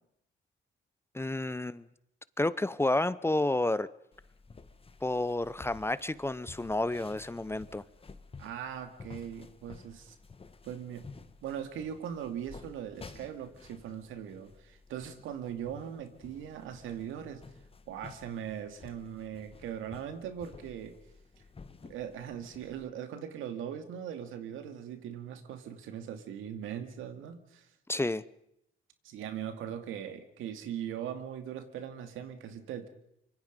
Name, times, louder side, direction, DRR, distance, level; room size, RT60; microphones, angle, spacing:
voice 1, 1.1-1.9 2.4-3.9 5.0-7.8 27.9-28.2, left 2 dB, 10° left, 17 dB, 0.7 m, -30 dB
sound 1, 4.1-22.9, left 4 dB, 30° left, 1.8 m, -53 dB
voice 2, 8.4-10.2 10.6-11.1 11.4-17.4 17.9-20.9 21.9-27.7 29.0-32.9, right 9 dB, 90° right, 8 dB, 2.4 m, -40 dB
25.0 x 24.0 x 5.3 m, 0.77 s
cardioid pair, 90°, 20 cm